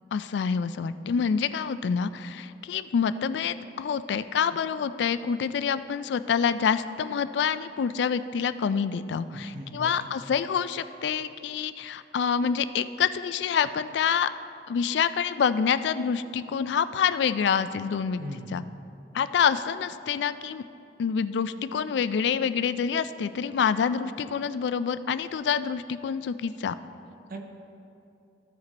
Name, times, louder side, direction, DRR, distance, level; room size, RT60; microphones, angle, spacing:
voice 1, 0.1-14.3 14.7-18.2 18.5-18.6 19.1-20.6 21.0-26.8, left 7 dB, 70° left, 13 dB, 0.3 m, -27 dB
voice 2, 9.3-9.9 18.2-18.7 27.3-27.4, equal, 55° right, 3 dB, 0.8 m, -39 dB
14.0 x 5.1 x 4.1 m, 2.7 s
head